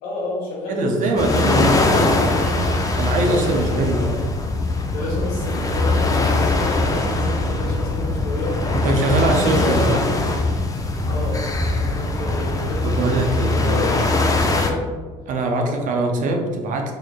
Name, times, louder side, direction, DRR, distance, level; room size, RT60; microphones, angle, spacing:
voice 1, 0.0-2.8 3.1-10.1 11.1-14.9 15.6-15.8, left 1 dB, 75° left, -4 dB, 1.5 m, -30 dB
voice 2, 0.7-2.2 3.0-4.0 8.7-10.0 12.8-14.1 15.3-16.9, right 2 dB, 55° right, 3 dB, 0.6 m, -22 dB
sound 1, 1.2-14.7, left 2 dB, 20° left, 0.5 m, -21 dB
4.0 x 3.2 x 2.3 m, 1.4 s
hypercardioid pair, 70°, 16 cm